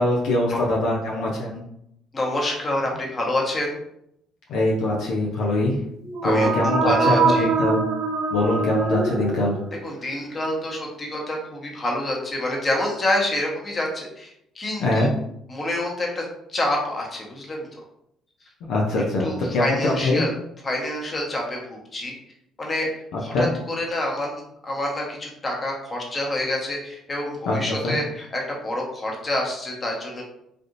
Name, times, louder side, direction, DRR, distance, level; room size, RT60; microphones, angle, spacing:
voice 1, 0.0-1.6 4.5-5.8 6.2-7.8 8.3-9.5 14.8-15.1 18.7-20.2 23.1-23.5 27.5-28.0, left 1 dB, 75° left, -3 dB, 0.5 m, -23 dB
voice 2, 2.1-3.8 6.2-7.5 9.8-15.1 15.5-16.2 16.5-17.8 19.2-20.3 20.6-22.1 22.6-22.9 23.2-24.3 24.6-30.2, left 1 dB, 35° left, -1 dB, 1.1 m, -27 dB
sound 1, 6.0-9.9, right 4 dB, 70° right, 0.9 m, -24 dB
3.3 x 2.6 x 2.6 m, 0.76 s
supercardioid pair, 65°, 0 cm